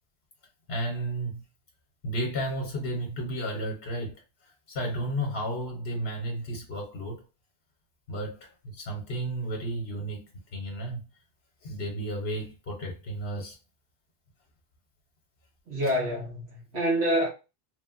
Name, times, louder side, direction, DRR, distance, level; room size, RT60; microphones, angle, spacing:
voice 1, 0.7-1.4 2.0-7.2 8.1-10.2 10.5-11.0 11.6-13.6 15.8-15.9, right 1 dB, 65° left, 1.0 m, -33 dB
voice 2, 15.7-17.3, equal, 80° right, 1.2 m, -27 dB
3.1 x 2.1 x 2.4 m
omnidirectional pair, 1.1 m